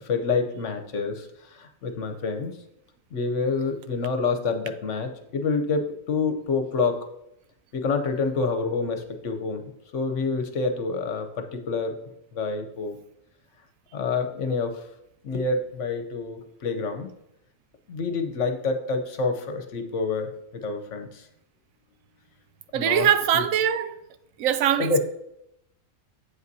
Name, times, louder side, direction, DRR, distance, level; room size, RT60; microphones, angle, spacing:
voice 1, 0.1-1.2 1.6-2.5 3.1-7.0 7.7-9.6 9.9-12.0 12.3-13.0 13.9-14.8 15.2-17.1 17.9-21.1 22.7-23.1 23.3-23.4 24.8-25.0, left 4 dB, 65° left, 1.1 m, -27 dB
voice 2, 22.7-23.9 24.4-25.0, right 9 dB, 80° right, 1.0 m, -22 dB
8.1 x 7.9 x 2.7 m
omnidirectional pair, 1.4 m